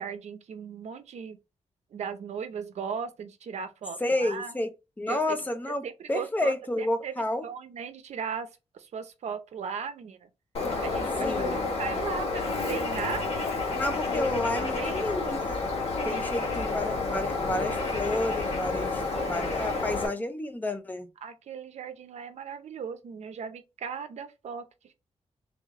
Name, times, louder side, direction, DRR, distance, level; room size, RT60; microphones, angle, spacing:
voice 1, 0.0-1.4 1.9-4.5 5.1-5.4 5.7-7.1 7.4-8.5 8.7-10.3 10.8-13.5 14.8-15.0 16.1-16.9 19.1-19.8 20.1-20.2 21.2-24.7, right 6 dB, 80° right, 0.7 m, -37 dB
voice 2, 4.0-4.7 5.0-7.5 11.2-11.7 13.7-15.6 16.0-19.0 19.3-21.1, left 1 dB, 15° left, 0.6 m, -30 dB
Bird, 10.5-20.1, left 3 dB, 65° left, 1.3 m, -30 dB
3.6 x 3.4 x 3.6 m
wide cardioid pair, 175°, 11 cm